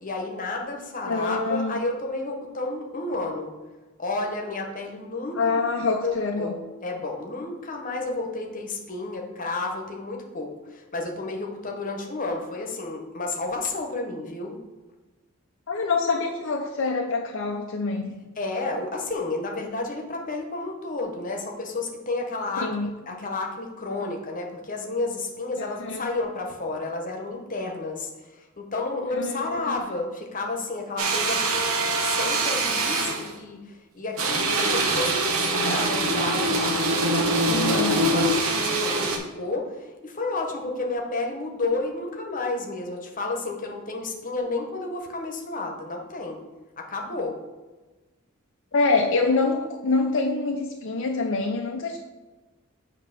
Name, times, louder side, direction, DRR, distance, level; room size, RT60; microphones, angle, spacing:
voice 1, 0.0-3.5 4.0-5.7 6.0-6.6 6.8-14.6 18.4-31.4 31.8-46.4 46.8-47.3, left 2 dB, 40° left, 1 dB, 1.0 m, -31 dB
voice 2, 1.1-1.8 5.3-6.5 15.7-18.2 22.6-22.9 25.8-26.1 29.1-29.8 37.5-38.1 48.7-52.0, left 3 dB, 60° left, 1 dB, 0.5 m, -25 dB
sound 1, 31.0-33.3 34.2-39.2, right 2 dB, 75° right, 1.0 m, -24 dB
7.5 x 3.0 x 5.9 m, 1.2 s
head